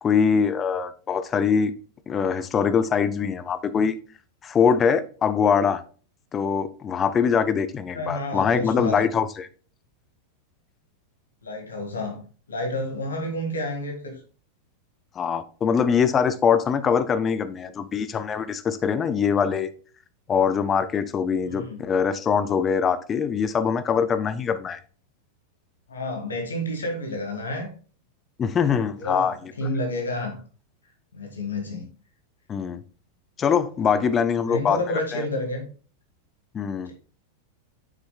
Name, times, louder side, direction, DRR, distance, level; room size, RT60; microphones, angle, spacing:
voice 1, 0.0-1.7 2.1-4.0 4.4-5.8 6.3-9.5 15.2-19.7 20.3-24.8 28.4-29.4 32.5-32.8 33.4-34.8 35.1-35.2 36.5-36.9, left 6 dB, 25° left, 0.6 m, -23 dB
voice 2, 7.9-9.1 11.4-12.2 12.5-14.2 21.4-21.9 25.9-27.7 29.0-30.4 31.1-31.9 33.8-34.1 34.4-35.7 36.9-37.0, left 1 dB, 70° left, 1.8 m, -30 dB
7.3 x 6.3 x 2.3 m
figure-of-eight pair, 90°, 0 cm